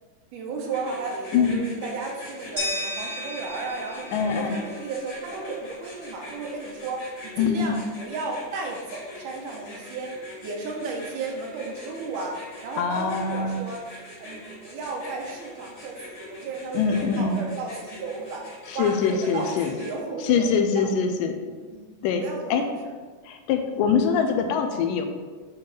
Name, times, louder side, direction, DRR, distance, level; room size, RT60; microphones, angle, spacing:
voice 1, 0.3-10.1 10.4-13.8 14.2-18.4 18.7-20.9 21.7-22.7 23.7-23.9, right 3 dB, 75° right, 1 dB, 2.2 m, -34 dB
sound 1, 0.7-20.0, left 1 dB, 60° left, 3.2 m, -43 dB
voice 2, 1.3-1.7 4.1-4.6 7.4-7.7 12.8-13.6 16.7-17.4 18.7-19.7 20.2-21.4 22.0-22.2 22.5-22.6 23.3-25.1, left 6 dB, 80° left, 5 dB, 2.1 m, -23 dB
sound 2, 2.6-5.5, left 1 dB, 10° right, 0.9 m, -34 dB
8.3 x 3.9 x 4.0 m, 1.4 s
omnidirectional pair, 3.9 m